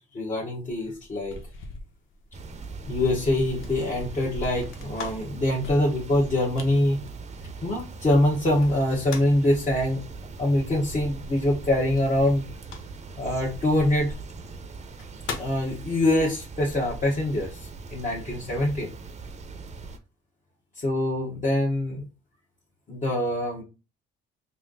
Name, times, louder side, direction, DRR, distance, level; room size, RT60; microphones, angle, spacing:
voice 1, 0.1-1.4 2.9-7.0 7.6-10.0 10.4-12.4 13.2-14.1 15.4-18.9 20.8-22.0 22.9-23.6, left 1 dB, 40° left, -5 dB, 1.4 m, -24 dB
sound 1, 0.7-8.1 8.7-9.5 11.9-13.2 14.2-14.3 14.8-15.6, left 3 dB, 85° left, 0.8 m, -41 dB
sound 2, 2.3-20.0, right 3 dB, 35° right, 0.6 m, -40 dB
3.3 x 2.7 x 3.8 m, 0.29 s
cardioid pair, 90°, 20 cm